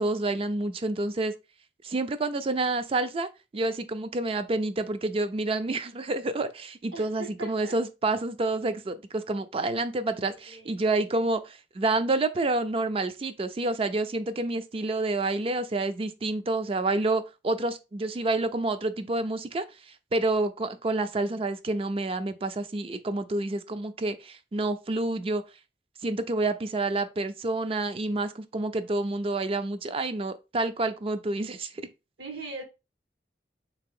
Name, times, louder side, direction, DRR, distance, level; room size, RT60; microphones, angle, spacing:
voice 1, 0.0-1.3 1.8-19.7 20.1-25.4 26.0-31.9, right 2 dB, 30° right, 0.4 m, -28 dB
voice 2, 6.9-7.7 10.3-10.9 32.2-32.6, right 3 dB, 80° right, 1.5 m, -40 dB
3.8 x 2.9 x 3.6 m
head